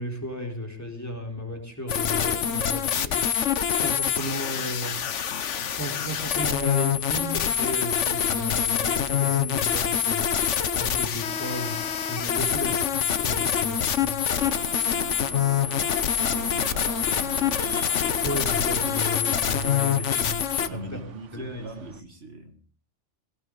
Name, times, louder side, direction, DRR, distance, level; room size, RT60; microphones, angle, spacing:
voice 1, 0.0-5.3 5.6-10.3 10.7-14.2 18.2-20.4 20.7-21.0 21.3-21.7, equal, 15° left, 2 dB, 3.9 m, -34 dB
sound 1, 1.9-20.7, left 8 dB, 80° left, 1.3 m, -25 dB
voice 2, 14.3-15.8 16.2-17.7 20.5-22.6, right 1 dB, 60° right, 5 dB, 2.2 m, -42 dB
sound 2, 14.3-22.0, right 6 dB, 90° right, 1.3 m, -42 dB
18.0 x 17.0 x 3.9 m, 0.41 s
omnidirectional pair, 1.2 m